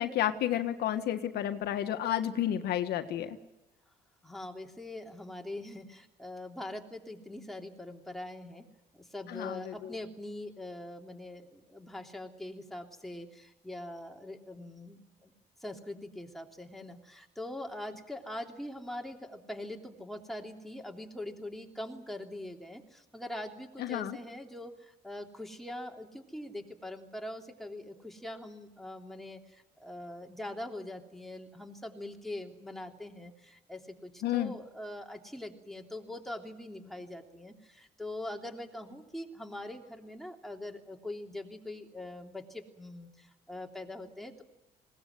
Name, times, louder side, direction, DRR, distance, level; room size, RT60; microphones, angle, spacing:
voice 1, 0.0-3.4 9.3-9.9 23.8-24.2 34.2-34.5, left 11 dB, 70° left, 8 dB, 1.7 m, -31 dB
voice 2, 4.2-8.6 9.1-11.4 11.7-13.3 13.6-15.3 15.6-22.8 23.1-24.7 25.0-29.4 29.8-33.3 33.7-43.1 43.5-44.4, left 1 dB, ahead, 2 dB, 3.2 m, -42 dB
20.5 x 18.5 x 9.5 m, 1.0 s
cardioid pair, 110°, 17 cm